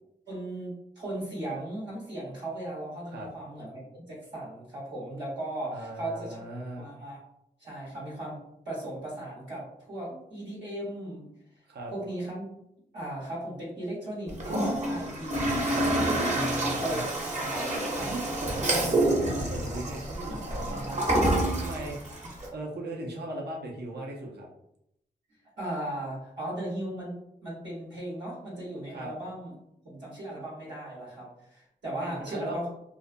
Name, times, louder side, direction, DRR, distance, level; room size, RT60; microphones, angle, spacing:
voice 1, 0.3-6.4 6.8-7.2 7.6-8.4 8.6-11.3 11.9-12.4 12.9-16.3 16.8-17.5 17.9-18.1 25.6-29.5 29.8-32.7, right 1 dB, 90° right, -7 dB, 1.2 m, -37 dB
voice 2, 5.7-6.9 11.7-11.9 16.3-17.1 18.1-22.2 22.5-24.5 28.9-29.1 32.0-32.6, right 1 dB, 65° right, -1 dB, 0.6 m, -38 dB
Toilet flush, 14.3-22.5, right 1 dB, 40° right, 0.9 m, -28 dB
2.4 x 2.2 x 2.5 m, 0.79 s
cardioid pair, 45°, 18 cm